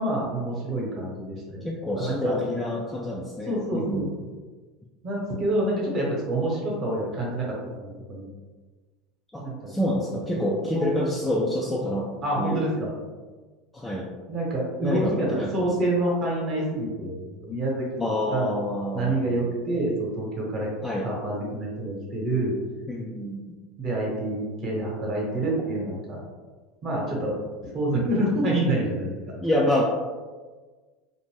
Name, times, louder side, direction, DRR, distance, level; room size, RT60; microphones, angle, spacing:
voice 1, 0.0-1.7 2.0-2.4 3.5-4.3 5.0-8.3 9.4-9.8 10.1-10.9 12.2-12.9 14.3-18.0 18.3-18.6 18.9-20.7 21.0-22.5 23.8-26.2 26.8-27.4 27.6-29.3, right 1 dB, 35° right, -3 dB, 0.9 m, -27 dB
voice 2, 1.6-4.1 9.3-12.1 12.4-12.7 13.7-14.1 14.8-15.7 18.0-19.5 20.8-21.1 22.9-23.4 29.4-29.8, left 1 dB, 5° left, -3 dB, 0.3 m, -27 dB
2.5 x 2.1 x 3.0 m, 1.3 s
supercardioid pair, 130°, 0 cm